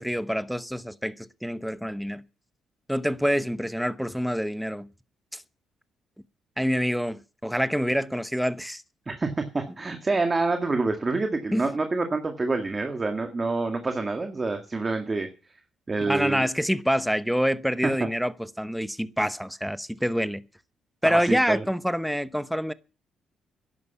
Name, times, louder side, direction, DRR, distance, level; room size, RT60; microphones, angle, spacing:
voice 1, 0.0-2.2 2.9-4.9 5.3-5.4 6.6-8.8 11.5-11.7 16.1-20.4 21.0-22.7, equal, ahead, 0.9 m, -26 dB
voice 2, 9.1-15.3 15.9-16.4 21.0-21.6, right 3 dB, 25° right, 1.9 m, -27 dB
11.0 x 11.0 x 7.1 m
cardioid pair, 90°, 0 cm